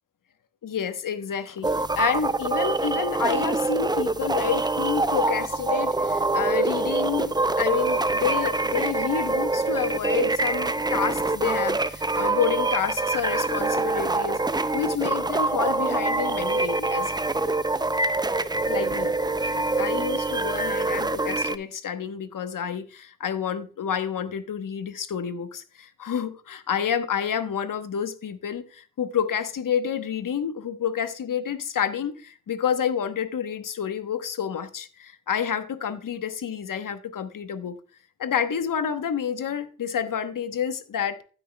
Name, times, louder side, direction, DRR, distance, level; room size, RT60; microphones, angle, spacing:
voice 1, 0.6-17.1 18.7-19.1 19.8-37.8 38.2-41.2, left 8 dB, 70° left, 1.0 m, -29 dB
sound 1, 1.6-21.6, right 3 dB, 15° right, 0.5 m, -25 dB
15.5 x 6.3 x 2.2 m
supercardioid pair, 40°, 33 cm